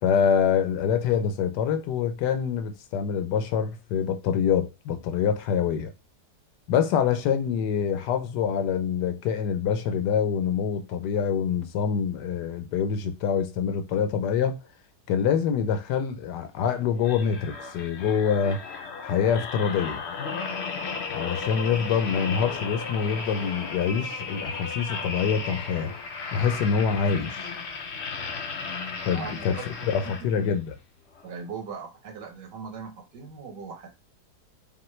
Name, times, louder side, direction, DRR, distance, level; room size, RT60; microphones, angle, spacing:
voice 1, 0.0-5.9 6.7-14.6 15.1-18.6 19.0-20.0 21.1-25.9 26.3-27.5 29.0-29.6 29.8-30.8, left 7 dB, 90° left, 1.3 m, -25 dB
sound 1, 17.0-30.6 31.1-31.3, left 5 dB, 55° left, 0.7 m, -35 dB
voice 2, 29.1-30.3 31.2-33.9, right 5 dB, 85° right, 1.6 m, -39 dB
5.3 x 2.6 x 3.1 m
omnidirectional pair, 1.7 m